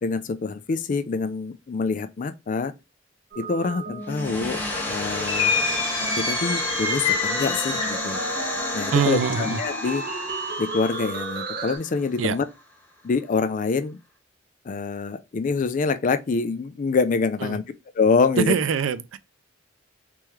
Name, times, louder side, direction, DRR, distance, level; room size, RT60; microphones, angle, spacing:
voice 1, 0.0-2.7 3.4-4.6 4.9-5.5 6.2-8.2 8.7-10.0 10.6-12.4 13.0-14.0 14.7-17.6 18.0-18.5, left 4 dB, 40° left, 0.4 m, -25 dB
sound 1, 3.3-11.8, right 1 dB, 55° right, 1.1 m, -33 dB
sound 2, 4.0-12.6, left 1 dB, 10° left, 1.3 m, -32 dB
sound 3, 5.3-8.1, left 4 dB, 25° left, 1.0 m, -26 dB
voice 2, 8.9-9.6 12.2-12.4 17.4-17.6 18.4-19.2, right 7 dB, 85° right, 0.4 m, -23 dB
3.5 x 3.1 x 3.0 m
head